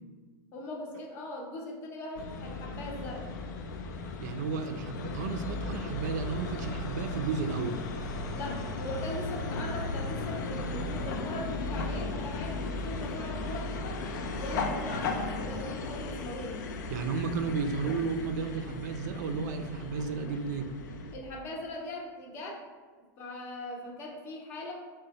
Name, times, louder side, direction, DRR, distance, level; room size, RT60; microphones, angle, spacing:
voice 1, 0.5-3.3 8.3-14.0 14.4-16.6 21.1-22.6 23.2-24.7, left 1 dB, 25° left, 0 dB, 0.6 m, -40 dB
sound 1, 2.2-21.2, left 3 dB, 85° left, 0.4 m, -36 dB
voice 2, 4.2-7.8 16.9-20.7, right 5 dB, 75° right, 7 dB, 0.4 m, -33 dB
3.8 x 2.1 x 4.0 m, 1.5 s
supercardioid pair, 170°, 10 cm